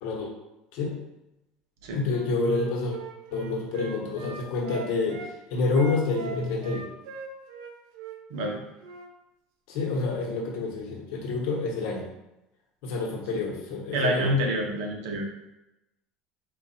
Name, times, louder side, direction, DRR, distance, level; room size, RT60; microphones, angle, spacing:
voice 1, 1.9-3.0 3.3-6.8 9.7-12.0 12.8-14.3, left 3 dB, 65° left, -1 dB, 1.2 m, -28 dB
Wind instrument woodwind instrument, 2.0-5.3 5.7-9.1, right 4 dB, 90° right, 0.7 m, -41 dB
voice 2, 13.9-15.2, equal, 70° right, 1 dB, 1.0 m, -27 dB
4.5 x 2.5 x 4.3 m, 0.94 s
cardioid pair, 180°, 2 cm